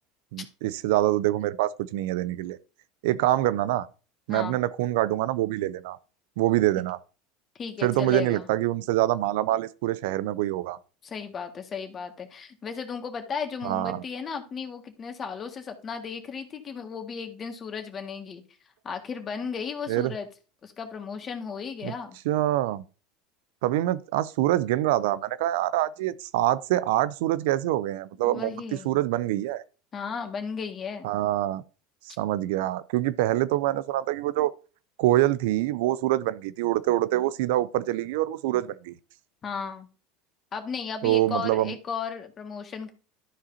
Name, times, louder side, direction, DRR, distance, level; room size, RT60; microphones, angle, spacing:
voice 1, 0.3-2.6 3.0-3.9 4.3-6.0 6.4-7.0 7.8-10.8 13.6-14.0 19.9-20.1 21.8-21.9 22.3-22.8 23.6-28.5 28.8-29.6 31.0-31.6 32.1-34.5 35.0-38.9 41.0-41.7, right 15 dB, 70° right, 0.4 m, -25 dB
voice 2, 7.6-8.5 11.0-18.4 18.8-20.3 20.6-22.2 28.2-28.9 29.9-31.1 39.4-39.9 40.5-42.9, left 6 dB, 35° left, 1.7 m, -35 dB
13.0 x 4.8 x 2.7 m
hypercardioid pair, 80°, 0 cm